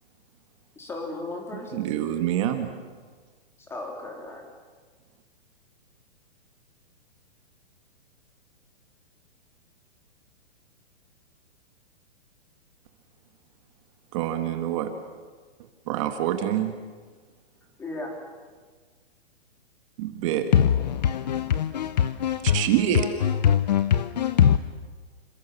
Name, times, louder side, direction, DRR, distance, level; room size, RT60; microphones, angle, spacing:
voice 1, 0.8-1.8 3.6-4.4 17.8-18.1, left 2 dB, 5° left, 3.7 m, -36 dB
voice 2, 1.7-2.7 14.1-14.9 15.9-16.7 20.0-20.5 22.4-23.1, right 11 dB, 30° right, 1.8 m, -26 dB
voice 3, 20.5-24.6, left 9 dB, 40° left, 0.8 m, -22 dB
28.0 x 26.5 x 7.1 m
hypercardioid pair, 170°, 33 cm